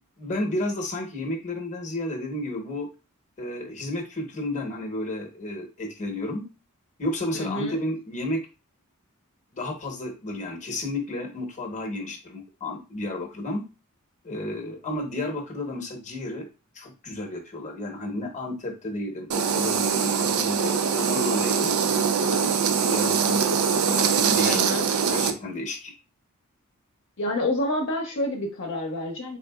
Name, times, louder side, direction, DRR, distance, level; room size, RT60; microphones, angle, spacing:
voice 1, 0.2-2.9 3.4-6.4 7.0-8.4 9.5-13.6 14.2-16.5 16.7-21.7 22.3-25.9, left 1 dB, 35° left, 2 dB, 1.0 m, -32 dB
voice 2, 7.3-7.8 24.4-24.9 27.2-29.4, left 1 dB, 55° left, 0 dB, 0.7 m, -28 dB
sound 1, 19.3-25.3, right 6 dB, 70° right, 0.5 m, -23 dB
3.8 x 3.7 x 2.3 m, 0.30 s
head